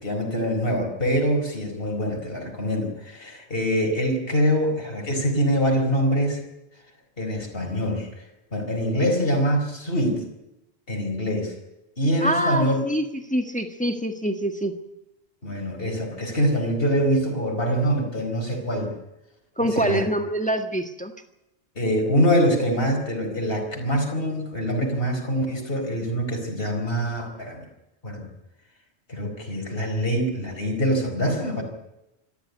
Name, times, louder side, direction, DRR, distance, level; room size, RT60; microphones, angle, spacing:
voice 1, 0.0-6.4 7.2-8.2 8.5-10.2 10.9-11.5 12.0-12.9 15.4-18.9 19.6-20.1 21.7-27.6 28.0-28.3 29.1-31.6, equal, 55° left, 2 dB, 4.9 m, -24 dB
voice 2, 12.2-13.0 13.3-14.7 19.6-21.1, right 1 dB, 5° left, 6 dB, 1.6 m, -25 dB
26.0 x 13.0 x 9.5 m, 0.91 s
omnidirectional pair, 1.2 m